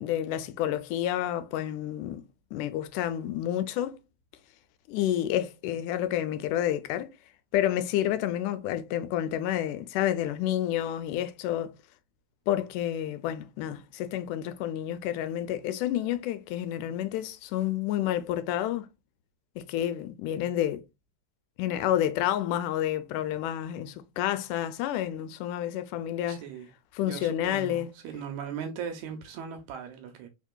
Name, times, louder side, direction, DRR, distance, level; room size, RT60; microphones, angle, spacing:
voice 1, 0.0-2.2 2.5-4.0 4.9-7.1 7.5-11.7 12.5-18.9 19.6-20.8 21.6-26.4 26.9-27.9, left 12 dB, 80° left, 2.0 m, -29 dB
voice 2, 26.3-26.7 27.0-30.3, right 7 dB, 80° right, 1.8 m, -38 dB
4.3 x 3.6 x 2.2 m
omnidirectional pair, 3.6 m